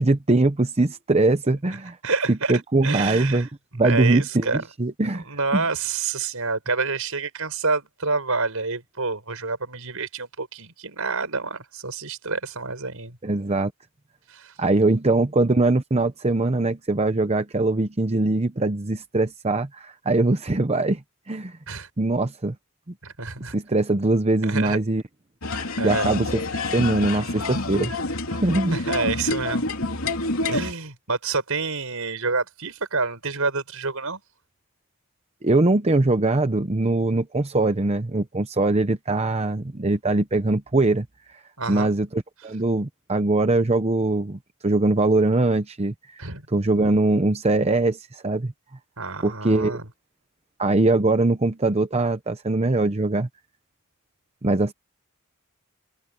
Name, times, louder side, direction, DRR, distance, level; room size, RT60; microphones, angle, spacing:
voice 1, 0.0-2.0 2.3-3.5 3.7-5.2 5.5-5.6 13.2-13.7 14.6-21.0 21.3-21.6 22.0-22.5 23.5-25.0 25.8-26.4 26.7-27.9 28.3-28.8 35.4-41.1 41.7-46.2 46.5-48.5 49.2-49.8 50.6-53.3 54.4-54.7, right 2 dB, 30° right, 0.8 m, -22 dB
voice 2, 1.7-4.6 5.2-13.2 14.3-14.5 21.7-21.9 23.0-23.6 24.4-24.8 25.8-26.1 28.7-29.7 30.5-34.2 41.6-41.9 46.2-46.5 49.0-49.9, right 4 dB, 75° right, 5.7 m, -28 dB
sound 1, 25.4-30.7, left 2 dB, 70° left, 3.2 m, -27 dB
head